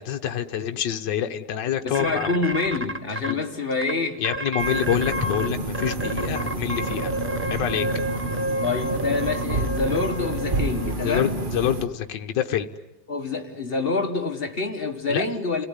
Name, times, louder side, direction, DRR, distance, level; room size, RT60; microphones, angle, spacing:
voice 1, 0.0-2.3 3.3-3.4 4.2-7.1 7.5-7.9 11.0-12.7 15.1-15.2, left 9 dB, 65° left, 6 dB, 1.7 m, -26 dB
voice 2, 1.8-4.2 8.6-11.4 13.1-15.7, left 3 dB, 30° left, 5 dB, 1.8 m, -27 dB
sound 1, 1.9-3.3 3.8-3.9 4.2-5.5 5.7-10.9, right 1 dB, 10° right, 0.6 m, -30 dB
sound 2, 4.6-11.9, right 2 dB, 30° right, 1.3 m, -29 dB
30.0 x 18.5 x 9.7 m, 0.97 s
omnidirectional pair, 2.1 m